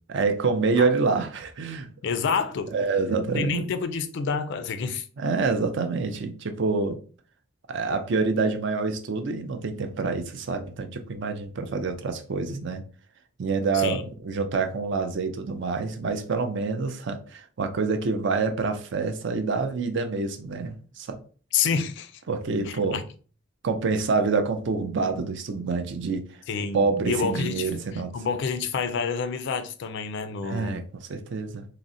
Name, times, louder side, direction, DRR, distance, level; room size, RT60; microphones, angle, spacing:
voice 1, 0.1-1.9 2.7-3.7 5.2-7.0 7.7-12.8 13.4-21.2 22.3-23.0 23.6-26.4 26.7-28.1 30.4-31.7, right 4 dB, 60° right, 0.4 m, -27 dB
voice 2, 2.0-2.7 3.3-5.1 13.7-14.0 21.5-22.1 22.7-23.0 26.5-27.7 28.1-30.8, left 5 dB, 60° left, 0.3 m, -28 dB
3.7 x 2.0 x 2.6 m
head